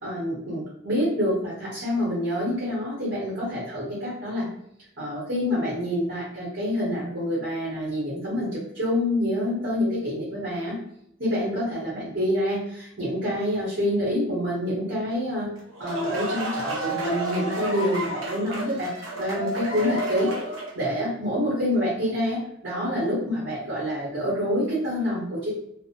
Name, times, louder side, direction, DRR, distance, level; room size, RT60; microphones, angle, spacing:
voice 1, 0.0-4.5 5.0-10.8 11.2-15.5 15.8-20.3 20.7-25.6, equal, 65° right, -8 dB, 1.0 m, -27 dB
sound 1, 15.6-20.9, right 1 dB, 85° right, 0.6 m, -31 dB
2.7 x 2.0 x 2.5 m, 0.73 s
head